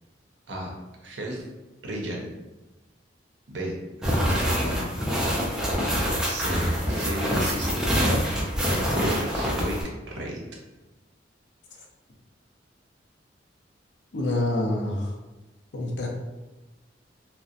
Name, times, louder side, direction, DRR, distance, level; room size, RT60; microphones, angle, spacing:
voice 1, 1.0-1.4 1.8-2.3 3.5-3.7 4.0-4.9 6.2-6.6 6.9-8.1 8.9-9.8 10.1-10.4, right 1 dB, 70° right, -1 dB, 0.6 m, -33 dB
sound 1, 4.0-9.8, equal, 5° right, 0.4 m, -25 dB
voice 2, 14.1-15.1 15.7-16.1, left 1 dB, 70° left, 0 dB, 0.5 m, -26 dB
2.7 x 2.1 x 2.4 m, 1.1 s
head